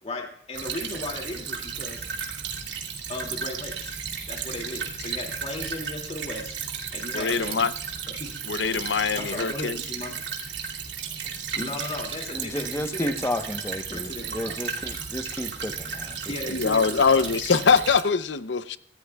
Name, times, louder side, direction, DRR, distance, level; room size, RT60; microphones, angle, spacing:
voice 1, 0.0-2.1 3.1-3.9 4.3-7.6 8.2-8.3 9.1-10.1 11.5-13.4 13.9-14.6 16.3-17.3, left 2 dB, 35° left, 2.5 m, -36 dB
Stream / Trickle dribble, 0.5-18.0, right 6 dB, 75° right, 2.6 m, -34 dB
voice 2, 7.1-7.7 8.5-9.8 16.5-18.8, left 5 dB, 80° left, 0.7 m, -23 dB
voice 3, 12.3-16.2, left 1 dB, 15° left, 1.0 m, -32 dB
24.0 x 15.5 x 2.4 m
head